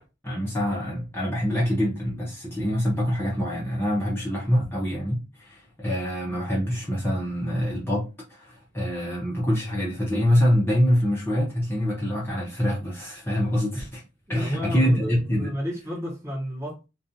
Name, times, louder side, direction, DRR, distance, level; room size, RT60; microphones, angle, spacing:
voice 1, 0.2-14.0 14.3-15.5, equal, 10° left, 0.6 m, -25 dB
voice 2, 14.3-16.9, left 1 dB, 15° right, 0.9 m, -32 dB
2.4 x 2.3 x 2.7 m
head